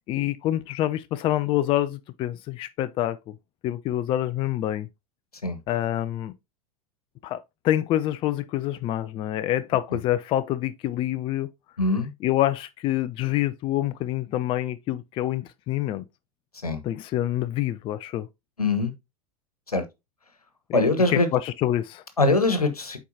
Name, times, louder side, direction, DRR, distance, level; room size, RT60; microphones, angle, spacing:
voice 1, 0.1-3.3 3.6-4.9 5.7-6.3 7.2-11.5 12.2-16.1 16.8-18.3 20.7-20.8 21.1-22.0, left 13 dB, 30° left, 0.5 m, -26 dB
voice 2, 11.8-12.1 16.6-16.8 18.6-18.9 19.7-19.8 20.7-21.3 22.2-23.0, left 2 dB, 85° left, 1.2 m, -22 dB
8.3 x 4.6 x 2.7 m
figure-of-eight pair, 90°, 19 cm